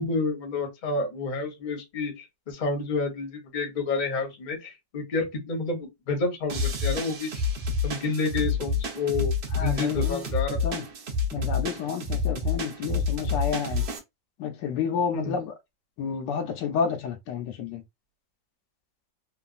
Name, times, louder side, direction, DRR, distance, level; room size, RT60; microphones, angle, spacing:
voice 1, 0.0-7.3 7.8-9.3 9.6-10.6 15.1-15.4, left 3 dB, 35° left, 0.8 m, -29 dB
sound 1, 6.5-14.0, left 4 dB, 55° right, 0.7 m, -28 dB
voice 2, 9.5-10.2 10.5-10.8 11.3-13.8 14.4-15.5 16.0-17.8, left 6 dB, 75° left, 1.2 m, -30 dB
3.2 x 2.2 x 2.4 m
omnidirectional pair, 2.0 m